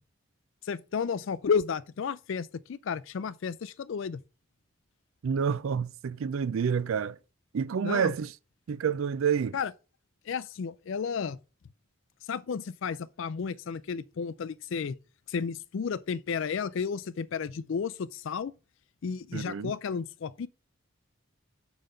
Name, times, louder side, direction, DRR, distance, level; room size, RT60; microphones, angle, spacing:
voice 1, 0.6-4.2 7.8-8.1 9.5-9.7 10.3-11.4 12.2-15.0 15.3-18.5 19.0-20.5, left 6 dB, 65° left, 0.4 m, -32 dB
voice 2, 5.2-7.2 7.5-8.3 8.7-9.6 19.3-19.7, right 7 dB, 70° right, 0.4 m, -28 dB
5.6 x 5.1 x 6.6 m
head